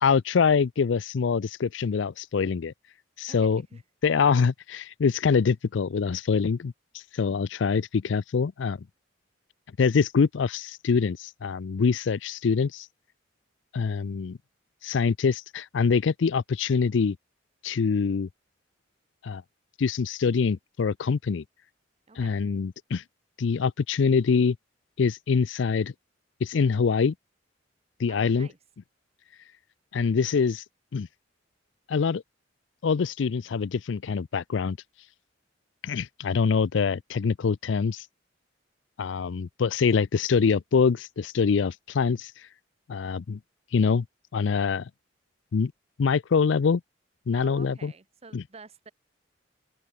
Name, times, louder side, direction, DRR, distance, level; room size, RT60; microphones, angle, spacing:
voice 1, 0.0-2.7 3.2-3.6 4.0-6.7 7.1-8.8 9.8-12.9 13.7-14.4 14.8-17.2 17.6-18.3 19.2-19.4 19.8-21.4 22.2-23.0 23.4-24.6 25.0-25.9 26.4-27.1 28.0-28.5 29.9-30.6 30.9-31.1 31.9-32.2 32.8-34.8 35.8-38.0 39.0-42.3 42.9-43.4 43.7-44.0 44.3-44.9 45.5-45.7 46.0-46.8 47.3-47.9 48.3-48.4, left 5 dB, 70° left, 0.4 m, -24 dB
voice 2, 3.3-3.8 22.1-22.5 28.1-28.6 47.3-48.9, right 4 dB, 35° right, 1.0 m, -49 dB
open air
head